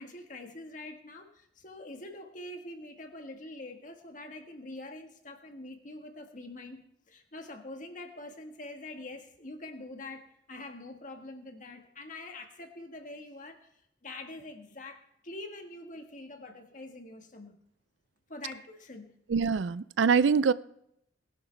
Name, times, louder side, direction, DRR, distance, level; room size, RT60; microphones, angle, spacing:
voice 1, 0.0-13.7 14.0-17.6 18.3-19.2, left 2 dB, 45° left, 1.6 m, -45 dB
voice 2, 19.3-20.5, right 5 dB, 75° right, 0.4 m, -24 dB
20.0 x 11.0 x 3.4 m
head